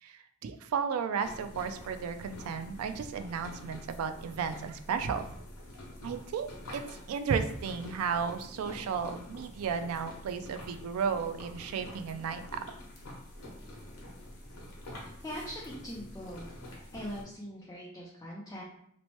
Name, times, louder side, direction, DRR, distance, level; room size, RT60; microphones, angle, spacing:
voice 1, 0.0-5.2 6.0-6.8 7.1-12.6, right 6 dB, 80° right, 9 dB, 0.3 m, -34 dB
sound 1, 1.2-17.2, left 1 dB, 85° left, 0.8 m, -47 dB
voice 2, 15.2-16.5 16.9-18.6, equal, 15° left, -5 dB, 0.4 m, -41 dB
2.9 x 2.1 x 2.9 m, 0.68 s
head